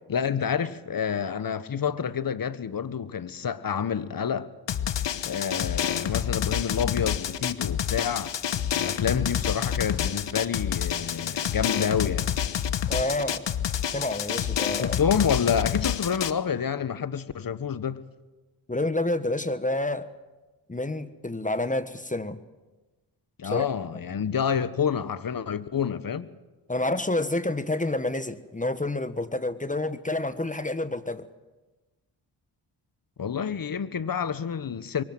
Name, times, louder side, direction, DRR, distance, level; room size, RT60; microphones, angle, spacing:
voice 1, 0.1-4.5 5.2-8.3 8.7-12.3 14.7-18.0 23.4-26.3 33.2-35.0, left 7 dB, 50° left, 1.3 m, -28 dB
Drum, 4.7-16.3, left 9 dB, 70° left, 1.2 m, -28 dB
voice 2, 12.9-13.4 13.9-15.0 18.7-20.1 20.7-22.4 23.4-23.6 26.7-31.3, left 2 dB, 15° left, 1.4 m, -28 dB
23.0 x 18.0 x 7.8 m
supercardioid pair, 50°, 45 cm